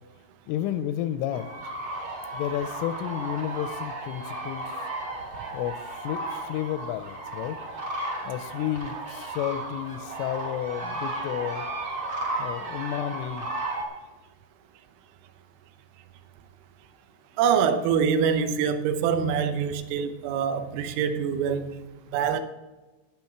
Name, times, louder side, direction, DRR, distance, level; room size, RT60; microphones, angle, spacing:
voice 1, 0.5-1.5 2.3-4.9 5.5-7.6 8.3-11.7 12.4-13.5, left 11 dB, 85° left, 10 dB, 2.9 m, -31 dB
sound 1, 1.3-13.8, right 2 dB, 55° right, 1.3 m, -34 dB
voice 2, 17.4-21.8 22.1-22.4, right 7 dB, 85° right, 9 dB, 3.6 m, -25 dB
17.5 x 6.0 x 4.5 m, 1.2 s
omnidirectional pair, 6.0 m